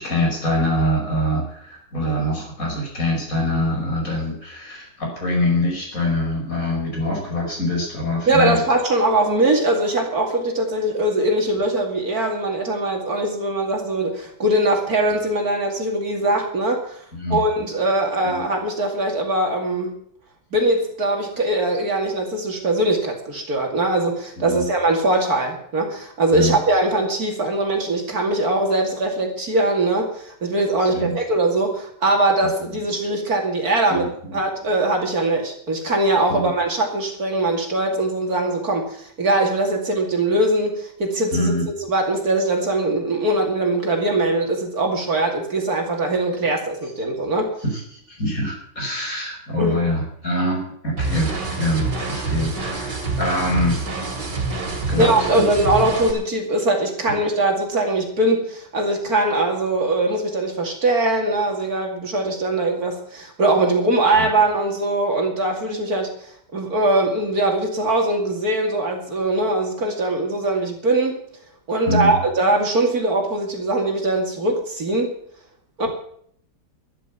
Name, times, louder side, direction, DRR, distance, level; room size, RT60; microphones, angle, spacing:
voice 1, 0.0-8.6 17.1-17.4 18.2-18.4 24.4-24.7 26.3-26.6 30.8-31.2 32.4-32.5 33.9-34.3 36.3-36.5 41.3-41.7 47.6-53.8 54.9-55.7 64.2-64.3 71.9-72.2, left 1 dB, 50° left, -1 dB, 5.9 m, -24 dB
voice 2, 8.3-17.0 17.3-19.9 20.5-41.5 41.9-47.5 49.6-49.8 55.0-71.2 71.7-75.1 75.8-75.9, right 2 dB, 60° right, 2 dB, 2.9 m, -21 dB
sound 1, 51.0-56.1, right 3 dB, 75° right, 3.2 m, -26 dB
12.5 x 11.0 x 7.2 m, 0.64 s
omnidirectional pair, 1.8 m